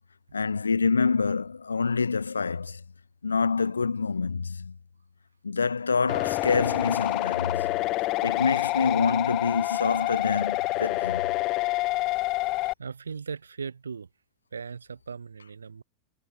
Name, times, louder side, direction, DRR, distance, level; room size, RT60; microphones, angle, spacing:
voice 1, 0.3-2.8 3.2-4.7 5.4-7.7 8.2-11.2, left 5 dB, 80° left, 0.4 m, -26 dB
sound 1, 6.1-12.7, left 20 dB, 45° left, 1.6 m, -27 dB
voice 2, 12.8-14.1 14.5-15.8, right 5 dB, 80° right, 6.4 m, -38 dB
figure-of-eight pair, 90°, 0 cm